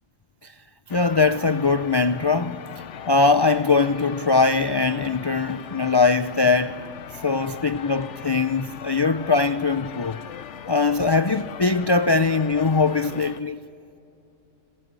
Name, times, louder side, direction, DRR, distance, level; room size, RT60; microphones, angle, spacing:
sound 1, 0.9-13.4, left 8 dB, 80° left, 1.1 m, -39 dB
voice 1, 0.9-6.8 7.2-10.2 10.7-13.6, left 4 dB, 40° left, 0.3 m, -21 dB
27.5 x 20.5 x 8.2 m
omnidirectional pair, 1.2 m